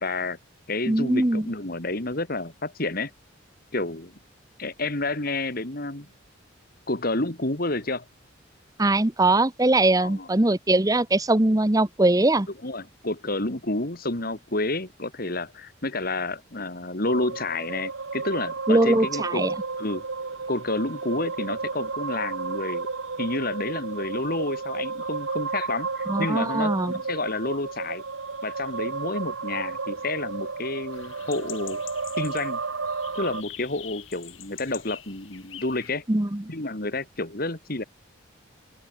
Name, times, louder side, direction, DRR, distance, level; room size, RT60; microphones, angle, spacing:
voice 1, 0.0-0.4 0.7-3.1 3.7-4.1 4.6-6.1 6.9-8.1 10.0-10.3 12.6-19.4 19.8-20.0 20.5-22.9 23.2-28.0 28.4-31.8 32.2-32.6 33.1-36.0 36.5-37.8, left 2 dB, 45° left, 2.7 m, -30 dB
voice 2, 0.9-1.5 8.8-12.5 18.7-19.5 26.1-26.9 36.1-36.4, right 2 dB, 20° right, 0.9 m, -21 dB
sound 1, 17.0-33.4, right 4 dB, 80° right, 1.3 m, -32 dB
sound 2, 30.9-35.9, left 12 dB, 75° left, 7.0 m, -44 dB
open air
head